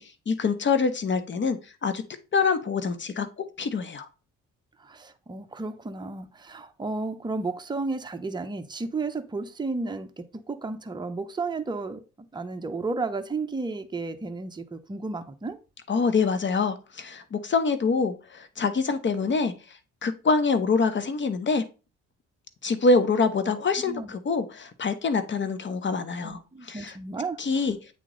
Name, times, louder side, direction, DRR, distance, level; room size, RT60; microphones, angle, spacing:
voice 1, 0.0-2.0 2.3-4.1 15.9-21.6 22.6-27.0 27.4-27.8, left 4 dB, 40° left, 0.9 m, -25 dB
voice 2, 4.8-12.0 12.3-15.6 23.4-23.5 23.9-24.1 26.2-27.4, right 3 dB, 15° right, 0.7 m, -33 dB
8.5 x 3.0 x 3.8 m
cardioid pair, 90°, 30 cm